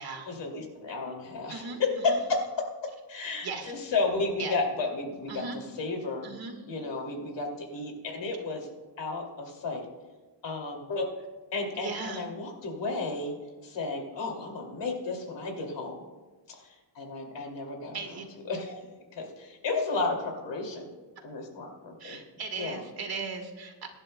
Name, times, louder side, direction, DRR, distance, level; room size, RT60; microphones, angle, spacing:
voice 1, 0.3-2.7 3.1-6.3 6.7-8.7 9.0-9.9 10.4-11.1 11.5-13.3 13.6-16.0 16.5-16.6 16.9-18.8 19.1-20.9 21.2-22.2 22.6-22.8, left 3 dB, 70° left, 2 dB, 2.7 m, -32 dB
voice 2, 1.5-2.2 3.4-3.7 4.4-4.6 5.3-5.6 6.2-6.6 11.7-12.2 17.9-18.3 22.0-23.9, right 4 dB, 55° right, 4 dB, 1.7 m, -37 dB
23.0 x 11.0 x 2.2 m, 1.2 s
wide cardioid pair, 170°, 45 cm